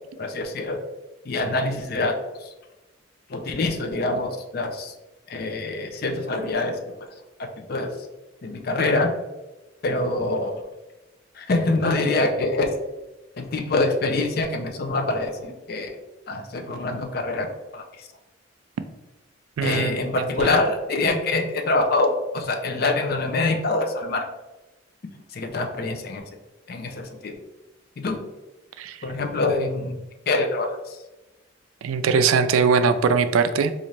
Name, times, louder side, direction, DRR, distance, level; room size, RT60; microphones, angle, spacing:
voice 1, 0.2-0.8 1.3-2.1 2.4-2.5 3.3-4.9 5.3-6.7 7.7-7.9 8.4-9.1 9.8-10.6 11.3-12.7 13.4-16.0 16.3-17.5 17.7-18.1 19.6-24.2 25.3-26.2 26.7-27.3 28.0-28.2 29.0-31.0, left 2 dB, 50° left, 5 dB, 0.4 m, -25 dB
voice 2, 19.6-20.0 20.4-20.5 28.8-29.0 31.8-33.7, right 5 dB, 85° right, 11 dB, 0.3 m, -21 dB
4.0 x 2.5 x 3.1 m, 1.1 s
head